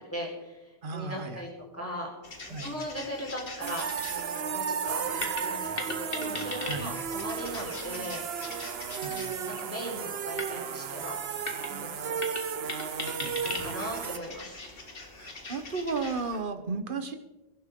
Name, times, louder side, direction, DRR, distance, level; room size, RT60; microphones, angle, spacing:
voice 1, 0.1-2.1 2.6-8.3 9.1-11.2 11.7-12.2 13.4-14.6, equal, 10° left, -3 dB, 4.5 m, -38 dB
voice 2, 0.8-1.4 2.5-2.7 6.6-6.9 9.0-9.3 13.2-13.5 15.2-17.1, right 4 dB, 50° right, 8 dB, 1.3 m, -34 dB
sound 1, 2.2-16.4, left 2 dB, 55° left, 1.9 m, -41 dB
sound 2, 3.6-14.2, right 7 dB, 70° right, 1.0 m, -34 dB
22.5 x 11.5 x 3.8 m, 1.1 s
omnidirectional pair, 1.1 m